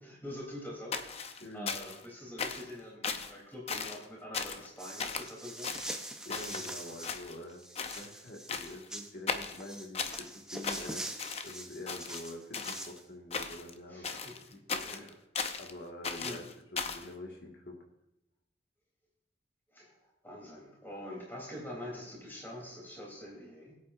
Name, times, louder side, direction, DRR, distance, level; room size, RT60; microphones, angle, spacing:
voice 1, 0.0-5.7 13.9-14.3 14.8-15.1 16.2-16.4 19.7-23.7, left 1 dB, 10° left, -3 dB, 3.2 m, -45 dB
sound 1, 0.9-2.1 2.4-2.7 3.0-3.3 3.7-4.0 4.3-4.7 5.0-5.3 5.6-6.7 7.0-7.5 7.8-8.1 8.5-8.9 9.3-10.3 10.6-11.6 11.9-12.9 13.3-13.7 14.0-15.7 16.0-17.1, left 5 dB, 35° left, 0.6 m, -37 dB
voice 2, 1.4-1.8 6.0-11.0 11.4-15.0 15.6-16.4 16.7-17.8, left 1 dB, 60° left, 0 dB, 1.8 m, -46 dB
sound 2, 4.8-7.2 7.5-9.1 9.6-13.0, right 1 dB, 5° right, 0.7 m, -44 dB
21.0 x 8.4 x 2.6 m, 0.85 s
head